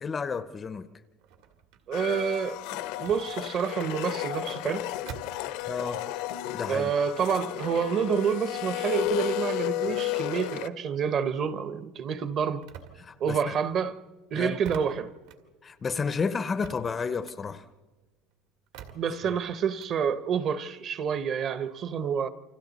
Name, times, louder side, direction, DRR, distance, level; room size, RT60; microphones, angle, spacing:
voice 1, 0.0-0.9 5.6-6.1 6.5-6.9 13.0-13.5 14.3-14.6 15.6-17.6, left 5 dB, 20° left, 0.5 m, -31 dB
sound 1, 1.1-6.3 6.6-11.4 11.7-20.0, right 8 dB, 75° right, 2.0 m, -50 dB
Domestic sounds home sounds, 1.9-10.7, left 14 dB, 65° left, 0.7 m, -33 dB
voice 2, 1.9-4.8 6.7-12.6 13.2-14.0 14.3-15.1 18.9-22.3, right 7 dB, 35° right, 0.8 m, -28 dB
28.5 x 25.5 x 4.0 m
cardioid pair, 175°, 0 cm